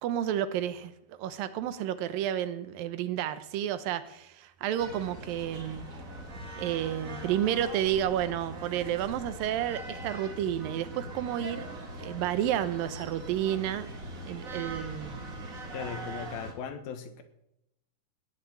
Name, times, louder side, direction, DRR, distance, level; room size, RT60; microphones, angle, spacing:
voice 1, 0.0-5.8 6.6-11.7 12.0-13.9 14.3-15.4, right 11 dB, 80° right, 13 dB, 2.5 m, -31 dB
sound 1, 4.8-16.5, right 1 dB, 30° right, 1.8 m, -41 dB
voice 2, 15.7-17.2, left 7 dB, 90° left, 8 dB, 3.2 m, -38 dB
18.0 x 6.7 x 8.7 m, 0.84 s
omnidirectional pair, 4.1 m